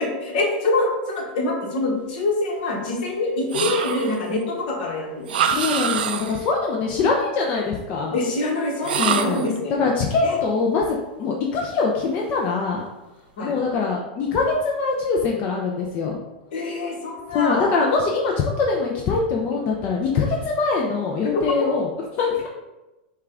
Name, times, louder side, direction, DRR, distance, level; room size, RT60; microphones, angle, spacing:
voice 1, 0.0-5.3 8.1-9.8 10.2-10.4 13.4-13.6 16.5-17.7, left 2 dB, 65° left, 0 dB, 1.2 m, -25 dB
sound 1, 3.5-4.3 5.3-6.5 8.8-9.6, right 7 dB, 80° right, 0.4 m, -25 dB
voice 2, 5.5-8.2 9.0-12.8 13.4-16.2 17.3-22.5, left 4 dB, 40° left, -1 dB, 0.6 m, -23 dB
5.4 x 2.4 x 3.7 m, 1.0 s
hypercardioid pair, 120°, 5 cm